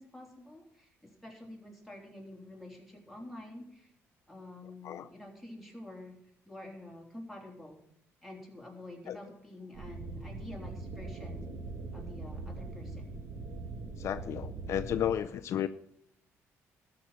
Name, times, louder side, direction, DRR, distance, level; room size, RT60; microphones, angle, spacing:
voice 1, 0.0-3.9 4.3-6.2 6.5-7.8 8.2-11.4 11.9-13.1, left 1 dB, ahead, 0 dB, 3.6 m, -48 dB
sound 1, 9.7-15.2, right 3 dB, 60° right, 2.0 m, -41 dB
voice 2, 14.0-15.7, left 10 dB, 65° left, 10 dB, 0.6 m, -33 dB
13.0 x 6.0 x 8.8 m, 0.72 s
cardioid pair, 110°, 5 cm